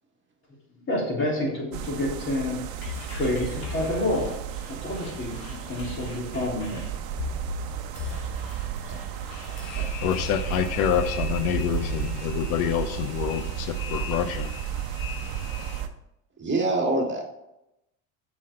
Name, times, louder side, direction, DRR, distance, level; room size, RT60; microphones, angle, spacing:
voice 1, 0.7-2.6 3.1-4.3 4.7-6.8, left 1 dB, 30° left, -2 dB, 3.3 m, -28 dB
sound 1, 1.7-15.9, right 10 dB, 55° right, 0.9 m, -33 dB
sound 2, 2.8-12.2, left 2 dB, 50° left, 2.6 m, -38 dB
voice 2, 9.3-15.8, left 9 dB, 75° left, 9 dB, 0.8 m, -28 dB
voice 3, 16.4-17.2, right 2 dB, 25° right, -1 dB, 2.0 m, -26 dB
7.5 x 6.2 x 4.3 m, 0.88 s
supercardioid pair, 115°, 43 cm